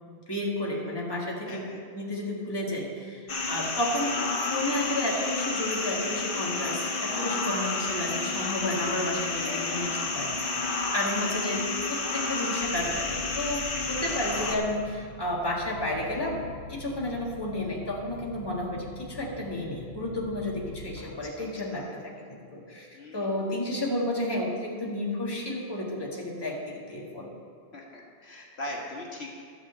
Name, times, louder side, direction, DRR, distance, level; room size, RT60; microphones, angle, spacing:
voice 1, 0.1-1.7 1.9-10.3 10.9-11.6 11.9-16.4 16.7-27.3, left 1 dB, 20° left, -3 dB, 1.8 m, -32 dB
voice 2, 1.5-1.8 9.3-9.9 13.9-14.2 21.0-21.1 21.4-21.8 22.9-23.3 27.7-29.3, left 1 dB, 75° left, -2 dB, 1.8 m, -40 dB
sound 1, 3.3-14.6, left 3 dB, 55° left, 1.3 m, -30 dB
sound 2, 12.6-21.0, left 2 dB, 60° right, 3.2 m, -44 dB
12.5 x 6.1 x 8.0 m, 2.2 s
omnidirectional pair, 1.1 m